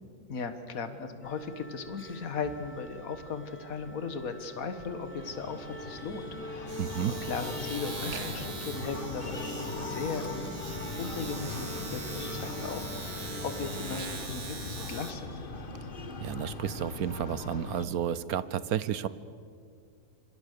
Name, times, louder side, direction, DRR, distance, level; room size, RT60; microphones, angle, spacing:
voice 1, 0.3-10.5 11.0-15.4, left 5 dB, 60° left, 9 dB, 1.9 m, -37 dB
sound 1, 1.2-14.0, equal, 15° left, 0.5 m, -43 dB
Domestic sounds home sounds, 3.4-3.6 3.8-15.1, right 4 dB, 45° right, 2.1 m, -43 dB
Breathing, 4.9-17.9, left 3 dB, 35° left, 1.4 m, -40 dB
voice 2, 6.8-7.1 16.2-19.1, right 9 dB, 70° right, 16 dB, 1.2 m, -31 dB
27.0 x 25.5 x 6.8 m, 2.2 s
omnidirectional pair, 1.7 m